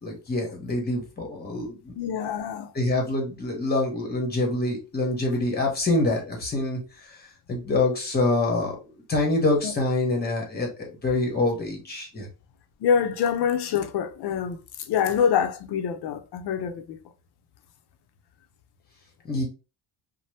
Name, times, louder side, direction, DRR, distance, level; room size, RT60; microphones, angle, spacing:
voice 1, 0.0-1.9 2.7-6.8 7.5-12.3 19.2-19.4, left 2 dB, 20° left, 0.9 m, -26 dB
voice 2, 1.9-2.7 9.6-9.7 12.8-17.0, left 7 dB, 65° left, 0.6 m, -25 dB
2.8 x 2.1 x 3.2 m
cardioid pair, 155°, 44 cm